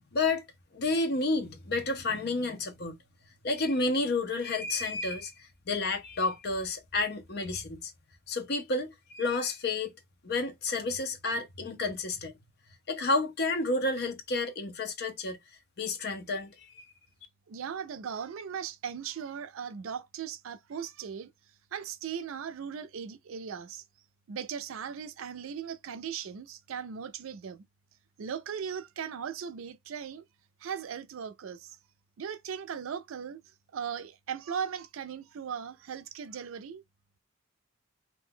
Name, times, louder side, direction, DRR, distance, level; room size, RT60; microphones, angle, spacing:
voice 1, 0.1-0.4 0.7-3.0 3.4-7.9 8.3-9.9 10.2-12.3 12.9-15.4 15.8-16.8, left 3 dB, 50° left, 0.6 m, -30 dB
voice 2, 17.5-21.3 21.7-23.8 24.3-27.6 28.2-30.2 30.6-31.8 32.2-33.4 33.7-36.8, right 7 dB, 80° right, 0.4 m, -38 dB
2.5 x 2.2 x 3.6 m
head